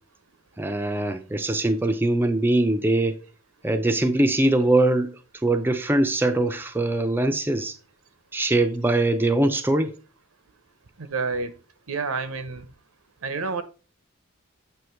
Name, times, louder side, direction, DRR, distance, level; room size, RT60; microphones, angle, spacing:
voice 1, 0.6-3.2 3.6-5.1 5.4-7.7 8.3-9.9, right 2 dB, 10° right, 0.5 m, -22 dB
voice 2, 11.0-11.5 11.9-12.7 13.2-13.6, right 4 dB, 80° right, 0.8 m, -28 dB
7.9 x 3.0 x 4.4 m
head